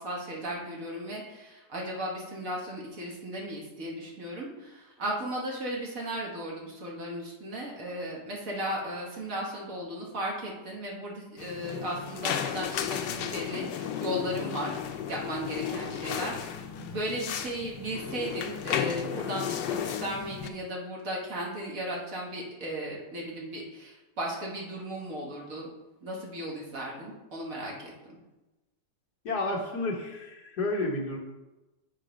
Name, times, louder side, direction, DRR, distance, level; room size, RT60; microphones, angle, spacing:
voice 1, 0.0-25.7 26.0-27.9, right 1 dB, 55° right, -3 dB, 1.7 m, -36 dB
sound 1, 11.4-20.5, left 9 dB, 85° left, 1.3 m, -34 dB
voice 2, 29.3-31.2, left 2 dB, 70° left, -2 dB, 1.7 m, -31 dB
7.7 x 3.8 x 5.0 m, 1.1 s
omnidirectional pair, 1.9 m